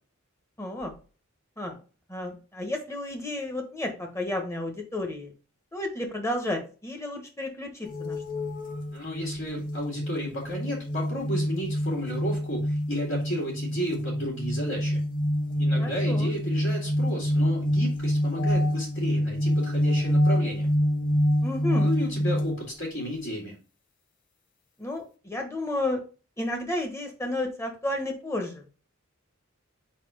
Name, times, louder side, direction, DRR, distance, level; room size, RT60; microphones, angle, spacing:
voice 1, 0.6-0.9 1.6-1.8 2.1-5.3 5.7-8.2 15.8-16.3 21.4-21.9 24.8-26.0 26.4-28.6, left 1 dB, 15° left, 3 dB, 1.2 m, -32 dB
sound 1, 7.8-22.6, equal, 40° left, 0.8 m, -26 dB
voice 2, 8.9-15.0 15.6-20.7 21.8-23.5, equal, 60° left, -2 dB, 2.2 m, -33 dB
4.8 x 4.2 x 5.0 m, 0.36 s
head